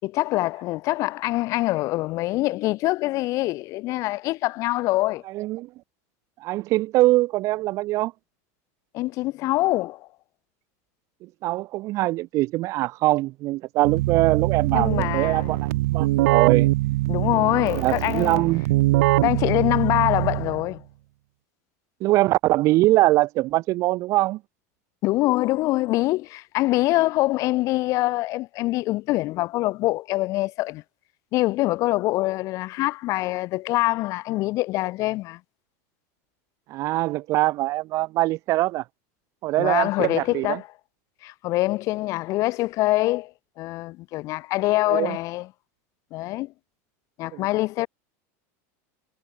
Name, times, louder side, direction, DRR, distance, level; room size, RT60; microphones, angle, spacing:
voice 1, 0.0-5.2 8.9-10.1 14.7-15.6 17.1-18.4 19.2-20.8 25.0-30.8 31.3-35.4 39.6-40.7 41.2-43.3 43.6-45.5 46.1-46.5 47.2-47.9, left 19 dB, 40° left, 3.4 m, -24 dB
voice 2, 5.3-5.7 6.4-8.1 11.2-16.7 17.7-18.6 22.0-24.4 36.7-38.8 39.4-40.6 44.9-45.2 47.3-47.5, right 18 dB, 40° right, 1.9 m, -23 dB
Keyboard (musical), 13.8-20.7, right 18 dB, 75° right, 0.9 m, -23 dB
supercardioid pair, 165°, 8 cm